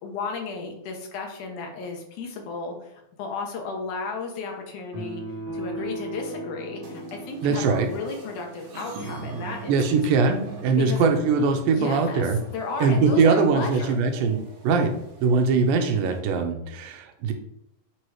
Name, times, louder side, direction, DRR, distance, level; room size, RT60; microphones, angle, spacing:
voice 1, 0.0-5.2 5.5-10.0 10.8-11.1 11.7-14.0, left 4 dB, 70° left, 2 dB, 2.3 m, -34 dB
sound 1, 4.9-8.5, right 1 dB, 40° right, 1.6 m, -37 dB
sound 2, 6.8-16.2, right 4 dB, 60° right, 2.1 m, -43 dB
voice 2, 7.4-7.9 9.7-12.4 12.8-14.9 15.2-17.3, right 4 dB, 90° right, 5 dB, 2.5 m, -21 dB
8.3 x 3.1 x 4.7 m, 0.79 s
omnidirectional pair, 4.0 m